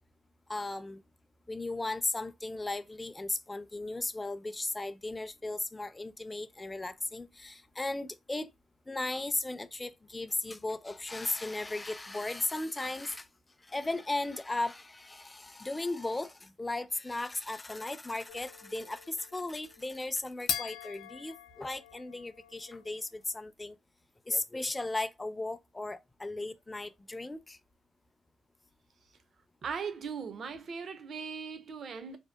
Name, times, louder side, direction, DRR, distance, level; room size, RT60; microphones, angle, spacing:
voice 1, 0.5-1.0 1.5-8.5 8.9-13.3 13.6-23.8 24.3-27.6, left 2 dB, 15° left, 0.3 m, -36 dB
sound 1, 18.3-23.1, left 8 dB, 90° left, 0.4 m, -41 dB
voice 2, 29.6-32.2, right 6 dB, 55° right, 0.5 m, -39 dB
2.6 x 2.0 x 2.2 m
cardioid pair, 90°, 0 cm